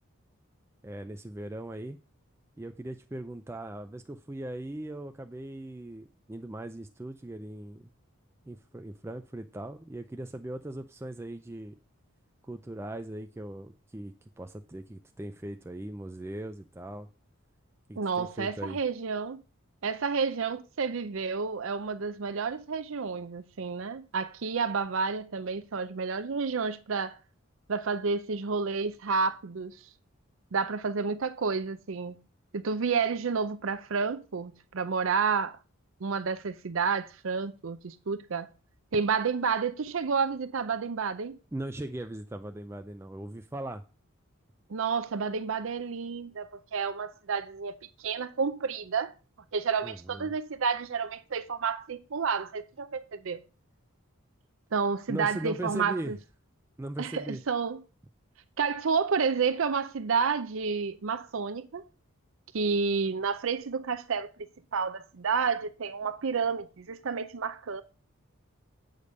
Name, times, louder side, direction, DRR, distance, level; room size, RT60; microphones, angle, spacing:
voice 1, 0.8-2.0 2.6-7.9 8.5-11.8 12.5-17.1 17.9-18.8 41.5-43.8 49.8-50.3 55.1-56.1 56.8-57.4, right 1 dB, 10° right, 0.4 m, -39 dB
voice 2, 18.0-19.4 19.8-27.2 27.7-29.8 30.5-32.2 32.5-35.6 36.0-38.5 38.9-41.3 44.7-49.1 49.5-53.4 54.7-56.2 57.0-57.8 58.6-61.8 62.5-64.3 64.7-67.8, right 5 dB, 65° right, 0.5 m, -30 dB
8.2 x 5.1 x 5.2 m
head